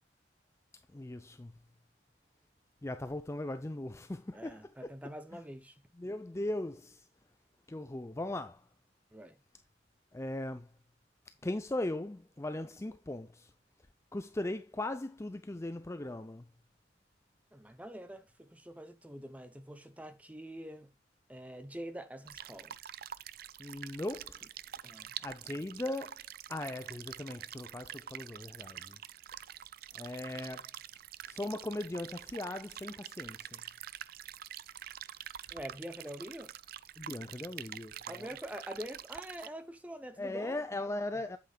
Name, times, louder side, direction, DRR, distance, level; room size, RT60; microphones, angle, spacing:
voice 1, 0.9-1.5 2.8-4.9 5.3-5.4 6.0-7.1 7.7-8.7 10.1-10.7 11.4-13.5 14.1-16.5 23.6-24.4 25.2-26.2 26.5-29.0 29.9-30.7 31.3-33.6 37.0-38.3 40.2-41.4, left 1 dB, 15° left, 0.4 m, -39 dB
voice 2, 4.3-5.8 9.1-9.4 17.5-20.9 21.3-22.8 24.8-25.2 35.5-36.5 38.1-40.6 41.1-41.2, equal, 10° right, 0.9 m, -45 dB
sound 1, 22.3-39.5, right 11 dB, 55° right, 0.4 m, -46 dB
8.4 x 8.1 x 2.3 m
head